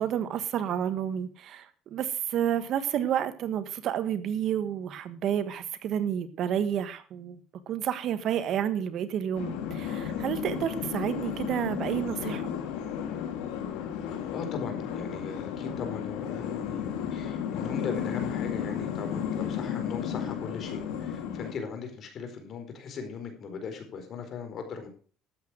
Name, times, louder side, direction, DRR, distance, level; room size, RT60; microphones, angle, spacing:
voice 1, 0.0-7.4 7.7-12.5, right 9 dB, 55° right, 12 dB, 1.4 m, -30 dB
sound 1, 9.3-21.5, left 8 dB, 85° left, 2.8 m, -33 dB
voice 2, 14.1-24.9, left 5 dB, 50° left, 5 dB, 4.5 m, -39 dB
13.0 x 8.4 x 6.3 m, 0.41 s
cardioid pair, 110°, 0 cm